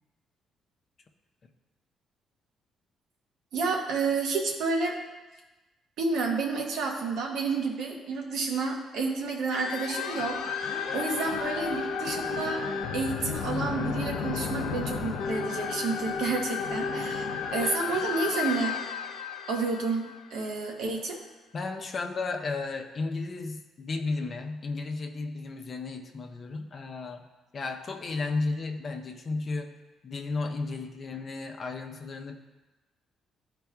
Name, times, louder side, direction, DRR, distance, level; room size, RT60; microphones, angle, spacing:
voice 1, 3.5-4.9 6.0-12.6 12.9-17.3 17.5-18.7 19.5-21.2, right 4 dB, 85° right, 1 dB, 1.0 m, -30 dB
sound 1, 9.5-20.7, left 6 dB, 85° left, 0.6 m, -33 dB
voice 2, 21.5-27.2 27.5-32.4, left 3 dB, 45° left, 3 dB, 0.7 m, -34 dB
12.0 x 4.0 x 2.3 m, 1.1 s
cardioid pair, 90°, 0 cm